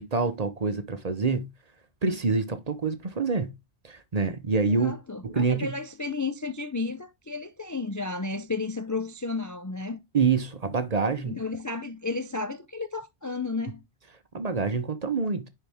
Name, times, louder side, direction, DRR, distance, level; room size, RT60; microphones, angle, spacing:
voice 1, 0.0-1.5 2.0-3.5 3.8-4.9 5.2-5.8 10.1-11.4 14.3-15.5, right 4 dB, 40° right, 0.9 m, -26 dB
voice 2, 4.5-10.0 11.3-13.9, left 3 dB, 25° left, 0.4 m, -33 dB
10.5 x 4.5 x 3.5 m
omnidirectional pair, 1.1 m